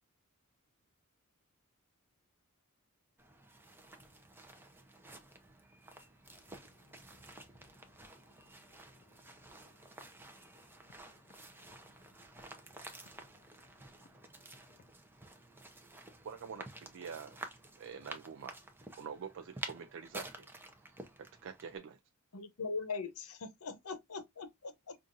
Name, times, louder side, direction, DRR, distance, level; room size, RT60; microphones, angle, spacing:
sound 1, 3.2-21.8, right 2 dB, 10° right, 0.6 m, -51 dB
voice 1, 6.3-9.1 9.8-14.8, left 4 dB, 40° left, 0.3 m, -68 dB
voice 2, 16.2-17.4 17.8-18.6 19.0-20.5 21.2-22.0, right 6 dB, 55° right, 0.4 m, -46 dB
voice 3, 22.3-25.0, left 4 dB, 75° left, 0.8 m, -41 dB
5.3 x 2.5 x 2.5 m
head